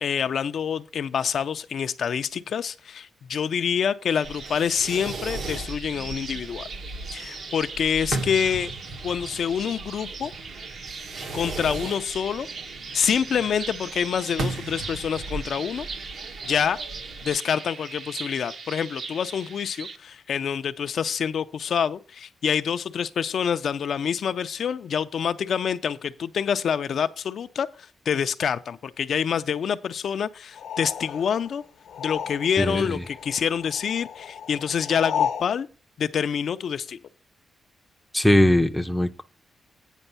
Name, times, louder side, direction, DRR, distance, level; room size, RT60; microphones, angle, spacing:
voice 1, 0.0-6.7 7.1-8.7 9.0-10.3 11.3-12.5 12.9-15.9 16.4-16.8 17.2-31.6 32.0-35.7 36.0-37.0, left 7 dB, 50° left, 0.4 m, -26 dB
sound 1, 4.1-20.0, right 4 dB, 45° right, 0.7 m, -39 dB
Fireworks, 4.2-17.3, right 3 dB, 70° right, 1.6 m, -37 dB
sound 2, 30.5-32.8 33.0-35.5, left 8 dB, 80° left, 0.9 m, -32 dB
voice 2, 32.6-33.0 38.1-39.2, left 1 dB, ahead, 0.5 m, -20 dB
9.0 x 5.3 x 5.5 m
wide cardioid pair, 170°, 0 cm